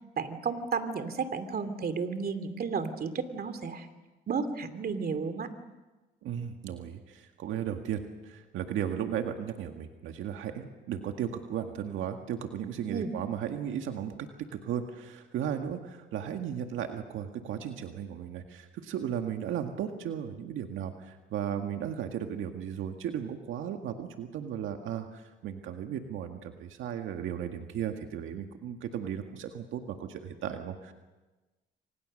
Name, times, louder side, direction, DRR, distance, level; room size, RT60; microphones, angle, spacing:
voice 1, 0.2-3.9 4.3-5.5 12.9-13.1, right 5 dB, 50° right, 10 dB, 2.7 m, -32 dB
voice 2, 6.2-14.1 14.5-30.9, right 9 dB, 85° right, 5 dB, 1.9 m, -35 dB
29.5 x 24.5 x 6.6 m, 1.2 s
cardioid pair, 90°, 20 cm